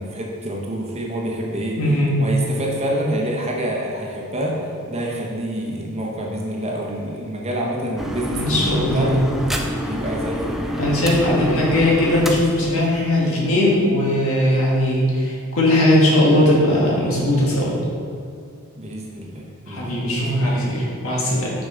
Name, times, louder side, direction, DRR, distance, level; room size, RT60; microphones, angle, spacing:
voice 1, 0.0-1.8 2.2-9.1 9.8-10.8 18.7-20.0, right 1 dB, 30° right, -2 dB, 0.9 m, -27 dB
voice 2, 1.8-2.1 8.4-9.1 10.8-17.8 19.7-21.5, left 1 dB, 65° left, -4 dB, 1.6 m, -19 dB
sound 1, 8.0-13.5, equal, ahead, 0.3 m, -28 dB
6.6 x 5.2 x 3.9 m, 2.3 s
head